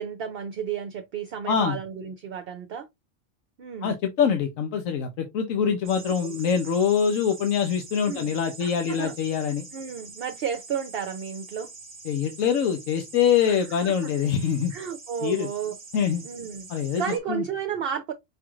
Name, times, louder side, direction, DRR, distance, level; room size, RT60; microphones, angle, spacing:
voice 1, 0.0-2.9 3.6-3.9 5.9-6.4 8.1-8.3 8.6-9.1 9.7-11.7 13.4-13.6 13.8-14.1 14.7-15.8 16.2-16.7 17.0-18.1, right 7 dB, 60° right, 0.7 m, -32 dB
voice 2, 1.5-1.8 3.8-9.7 12.1-14.7 15.2-15.5 15.9-16.2 16.7-17.0 17.3-17.4, left 7 dB, 90° left, 1.1 m, -24 dB
sound 1, 5.8-17.2, right 3 dB, 30° right, 0.9 m, -45 dB
5.5 x 2.4 x 3.0 m
omnidirectional pair, 1.3 m